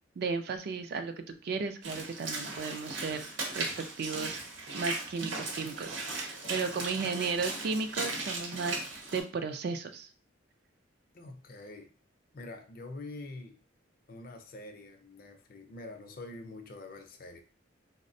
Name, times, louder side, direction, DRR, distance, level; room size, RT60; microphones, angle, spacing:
voice 1, 0.2-1.1 1.4-3.2 3.5-4.4 4.7-10.1, right 4 dB, 55° right, 8 dB, 0.3 m, -34 dB
Walk footsteps / Splash splatter, 1.8-9.2, right 3 dB, 80° right, 0.8 m, -37 dB
voice 2, 11.1-11.9 12.3-13.6 14.1-17.4, left 2 dB, 50° left, 6 dB, 0.5 m, -45 dB
4.1 x 2.0 x 2.6 m, 0.37 s
head